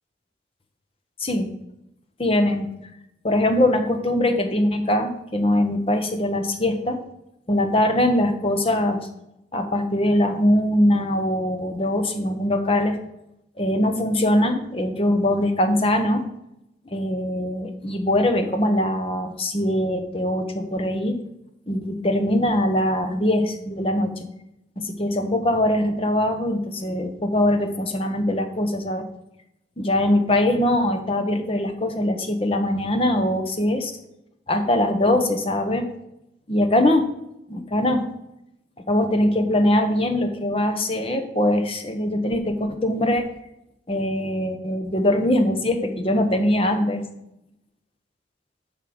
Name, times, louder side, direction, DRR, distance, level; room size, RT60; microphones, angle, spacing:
voice 1, 2.2-2.7 3.2-7.0 7.5-9.1 9.5-13.0 13.6-16.2 16.9-21.2 21.7-24.3 24.8-29.1 29.8-33.9 34.5-35.8 36.5-37.1 37.5-38.0 38.9-43.2 43.9-47.0, left 1 dB, 30° left, 6 dB, 1.0 m, -22 dB
8.5 x 5.8 x 6.1 m, 0.83 s
head